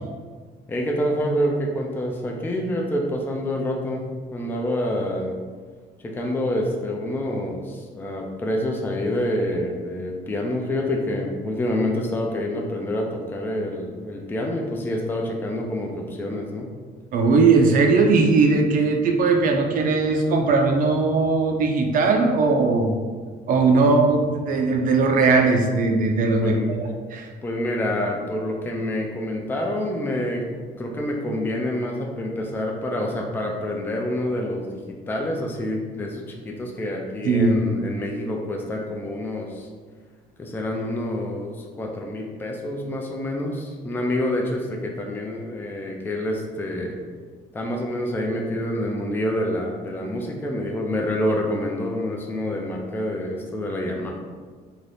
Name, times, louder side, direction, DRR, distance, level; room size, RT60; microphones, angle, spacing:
voice 1, 0.7-4.0 4.3-5.4 6.0-16.7 23.7-23.9 26.4-26.7 27.4-30.4 30.8-39.7 40.4-47.0 47.5-54.1, left 1 dB, 10° left, 0 dB, 0.4 m, -27 dB
voice 2, 17.1-23.0 23.5-26.8 27.1-27.3 37.2-37.6, right 3 dB, 55° right, 4 dB, 0.5 m, -19 dB
2.6 x 2.4 x 3.3 m, 1.5 s
cardioid pair, 110°, 17 cm